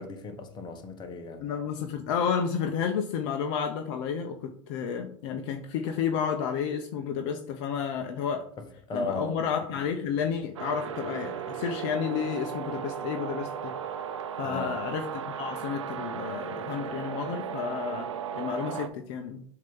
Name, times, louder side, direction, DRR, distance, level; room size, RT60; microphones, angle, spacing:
voice 1, 0.0-1.4 8.6-9.4 14.4-14.8, left 2 dB, 30° left, 1.3 m, -36 dB
voice 2, 1.4-8.5 8.9-13.7 14.4-18.1 18.3-19.4, left 7 dB, 55° left, 0.7 m, -31 dB
sound 1, 10.6-18.9, right 8 dB, 75° right, 0.6 m, -36 dB
7.4 x 2.9 x 5.4 m
hypercardioid pair, 90°, 16 cm